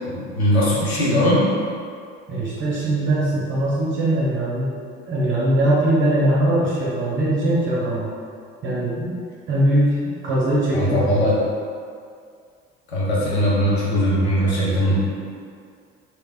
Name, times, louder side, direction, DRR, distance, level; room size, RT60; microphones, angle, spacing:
voice 1, 0.1-1.4 10.7-11.4 12.9-15.0, equal, 85° left, -7 dB, 0.8 m, -20 dB
voice 2, 2.3-4.8 5.1-8.1 8.6-9.1 9.5-11.2, right 1 dB, 40° right, -7 dB, 0.8 m, -21 dB
3.3 x 2.9 x 2.3 m, 2.2 s
hypercardioid pair, 65°, 31 cm